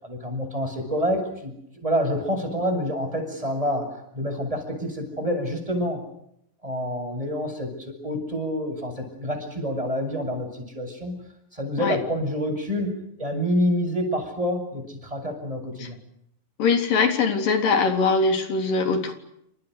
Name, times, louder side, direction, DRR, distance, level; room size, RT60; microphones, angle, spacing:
voice 1, 0.0-6.0 6.6-11.1 11.5-12.9 13.2-16.0, equal, 10° right, 6 dB, 7.9 m, -27 dB
voice 2, 16.6-19.1, left 4 dB, 65° left, 6 dB, 5.2 m, -22 dB
30.0 x 27.0 x 6.7 m, 0.74 s
omnidirectional pair, 4.2 m